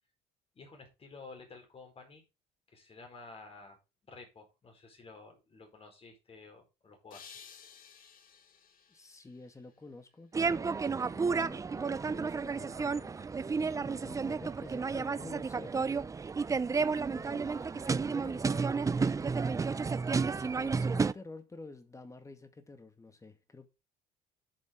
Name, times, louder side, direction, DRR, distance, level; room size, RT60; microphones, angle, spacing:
voice 1, 0.5-2.2 2.7-3.8 4.1-7.2, left 3 dB, 35° left, 4.5 m, -52 dB
sound 1, 7.1-10.2, left 7 dB, 55° left, 2.0 m, -55 dB
voice 2, 8.9-15.9 16.9-23.7, left 3 dB, 20° left, 2.0 m, -50 dB
sound 2, 10.3-21.1, right 5 dB, 20° right, 0.4 m, -31 dB
10.5 x 7.6 x 3.8 m
cardioid pair, 110°, 17 cm